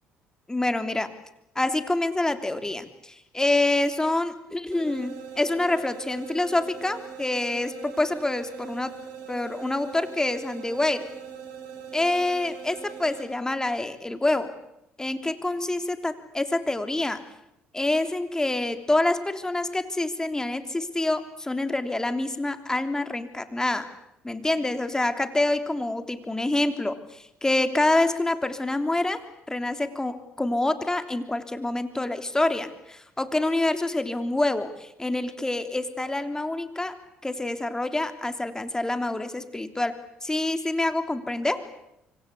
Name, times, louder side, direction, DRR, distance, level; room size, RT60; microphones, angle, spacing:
voice 1, 0.5-1.1 1.5-9.0 9.3-11.1 11.9-14.5 15.0-17.2 17.7-23.9 24.2-41.7, left 2 dB, 15° left, 8 dB, 3.2 m, -27 dB
sound 1, 4.7-13.3, right 8 dB, 90° right, 6.7 m, -41 dB
25.5 x 25.0 x 8.4 m, 0.82 s
supercardioid pair, 70°, 4 cm